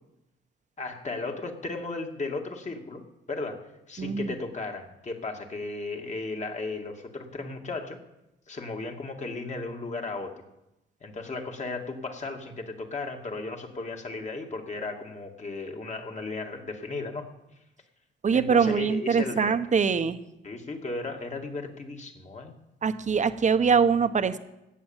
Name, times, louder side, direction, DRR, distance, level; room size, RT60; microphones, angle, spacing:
voice 1, 0.8-3.0 3.3-8.0 8.5-10.3 11.0-17.3 18.3-19.6 20.4-22.6, left 3 dB, 35° left, 3 dB, 2.3 m, -35 dB
voice 2, 4.0-4.3 18.2-20.2 22.8-24.4, right 6 dB, 35° right, 10 dB, 1.0 m, -23 dB
16.5 x 8.6 x 7.3 m, 0.92 s
cardioid pair, 90°, 20 cm